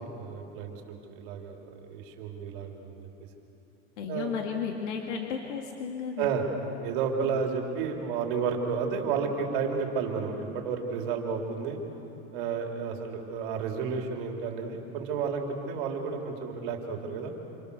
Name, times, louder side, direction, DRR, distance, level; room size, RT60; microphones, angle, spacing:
voice 1, 0.0-1.6 1.9-3.1 4.1-4.3 6.2-6.4 6.8-11.8 12.3-17.3, right 6 dB, 45° right, 2 dB, 3.2 m, -31 dB
voice 2, 4.0-6.3, left 6 dB, 75° left, 2 dB, 2.2 m, -34 dB
27.5 x 25.5 x 6.8 m, 3.0 s
supercardioid pair, 170°, 35 cm